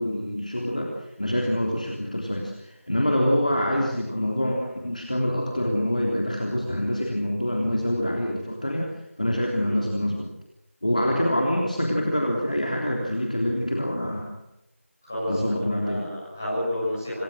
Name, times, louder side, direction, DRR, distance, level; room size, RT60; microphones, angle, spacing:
voice 1, 0.0-10.3 10.8-14.4 15.3-16.1, equal, 35° left, 0 dB, 3.3 m, -26 dB
voice 2, 15.0-17.2, left 1 dB, 10° left, -9 dB, 7.6 m, -30 dB
27.0 x 20.5 x 6.6 m, 0.89 s
figure-of-eight pair, 180°, 7 cm